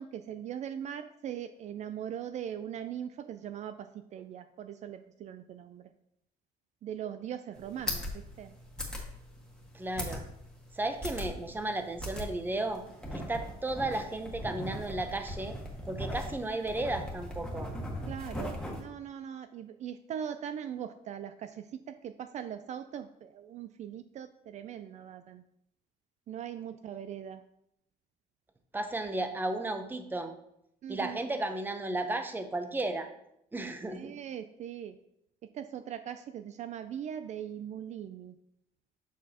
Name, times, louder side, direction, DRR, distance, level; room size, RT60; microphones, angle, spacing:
voice 1, 0.0-5.8 6.8-8.6 18.1-25.4 26.3-27.4 30.8-31.2 33.9-34.9 35.4-38.3, right 9 dB, 55° right, 10 dB, 0.4 m, -40 dB
sound 1, 7.5-18.8, equal, 5° left, 1.5 m, -39 dB
voice 2, 9.7-10.2 10.7-12.8 13.1-15.6 15.9-17.7 28.7-30.3 30.9-33.1 33.5-34.1, right 2 dB, 15° right, 7 dB, 0.7 m, -34 dB
7.3 x 6.0 x 2.9 m, 0.78 s
cardioid pair, 110°, 15 cm